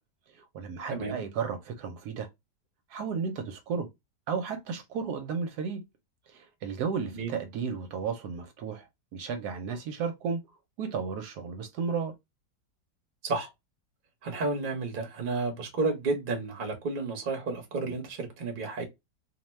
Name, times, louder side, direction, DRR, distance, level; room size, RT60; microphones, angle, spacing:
voice 1, 0.3-2.3 2.9-3.9 4.3-5.8 6.3-10.4 10.8-12.1, right 6 dB, 75° right, 1.1 m, -33 dB
voice 2, 14.2-18.8, right 3 dB, 40° right, 0.8 m, -31 dB
2.7 x 2.1 x 3.0 m
omnidirectional pair, 1.8 m